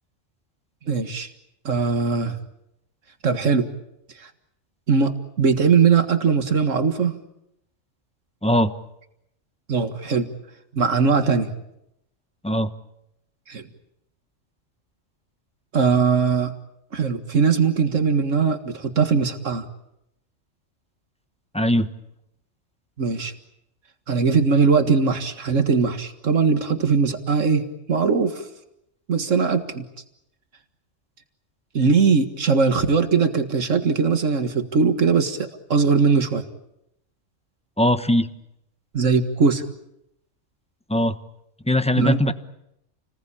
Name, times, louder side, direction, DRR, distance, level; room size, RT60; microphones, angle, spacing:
voice 1, 0.9-1.3 1.6-2.4 3.2-3.7 4.2-4.3 4.9-7.2 9.7-10.3 10.7-11.5 13.5-13.6 15.7-16.5 16.9-19.7 23.0-23.3 24.1-28.5 29.1-29.9 31.7-36.4 38.9-39.6 42.0-42.3, right 5 dB, 85° right, 7 dB, 2.1 m, -20 dB
voice 2, 8.4-8.7 12.4-12.7 21.5-21.9 37.8-38.3 40.9-41.1 41.7-42.3, left 1 dB, 5° left, 10 dB, 1.0 m, -20 dB
29.5 x 20.0 x 8.6 m, 0.83 s
omnidirectional pair, 1.3 m